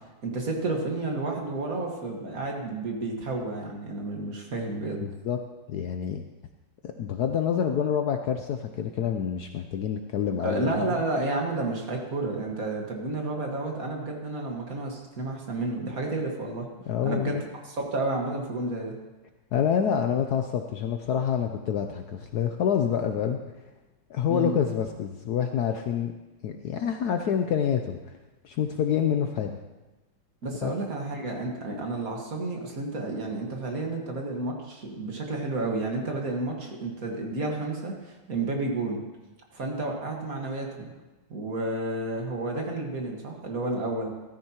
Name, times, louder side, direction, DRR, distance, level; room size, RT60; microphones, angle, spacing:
voice 1, 0.2-5.1 10.4-16.7 17.0-17.4 17.7-18.9 24.3-24.5 30.4-39.0 39.5-40.9 41.3-44.1, right 2 dB, 45° right, 1 dB, 1.9 m, -31 dB
voice 2, 5.0-5.4 5.7-6.2 6.8-10.9 16.9-17.4 19.5-23.4 24.1-26.1 26.4-28.1 28.4-29.5 30.6-30.7, left 8 dB, 70° left, 6 dB, 1.0 m, -27 dB
14.0 x 13.5 x 2.9 m, 1.1 s
omnidirectional pair, 2.1 m